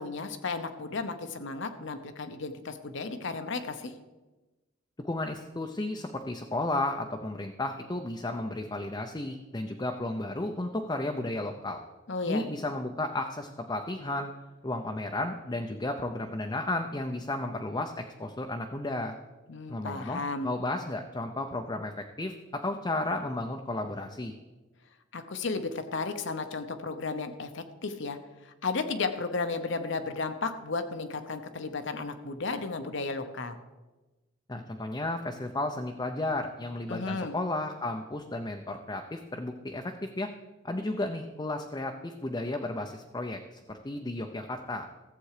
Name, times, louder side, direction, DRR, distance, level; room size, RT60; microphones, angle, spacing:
voice 1, 0.0-3.9 12.1-12.4 19.5-20.5 25.1-28.2 28.4-33.6 36.9-37.3, left 4 dB, 65° left, 8 dB, 0.9 m, -34 dB
voice 2, 5.0-11.8 12.3-14.3 14.6-19.1 19.7-24.3 34.5-40.3 40.6-44.9, left 2 dB, 20° left, 3 dB, 0.6 m, -33 dB
14.5 x 7.8 x 4.9 m, 1.2 s
head